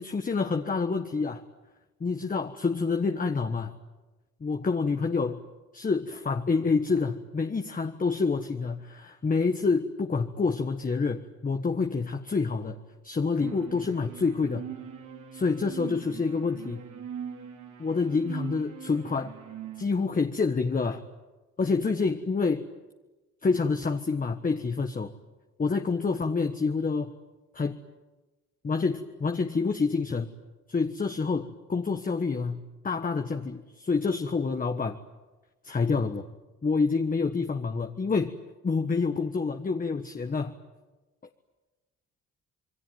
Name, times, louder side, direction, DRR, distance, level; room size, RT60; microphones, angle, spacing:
voice 1, 0.0-1.4 2.0-3.7 4.4-5.4 5.7-12.8 13.0-14.7 15.3-16.8 17.8-19.3 19.8-21.0 21.6-22.7 23.4-25.1 25.6-27.1 27.5-27.8 28.6-30.3 30.7-35.0 35.6-36.3 36.6-38.3 38.6-40.6, left 4 dB, 30° left, 6 dB, 1.4 m, -27 dB
sound 1, 13.4-19.8, right 8 dB, 80° right, 3.9 m, -41 dB
27.5 x 22.0 x 9.3 m, 1.1 s
cardioid pair, 90°, 30 cm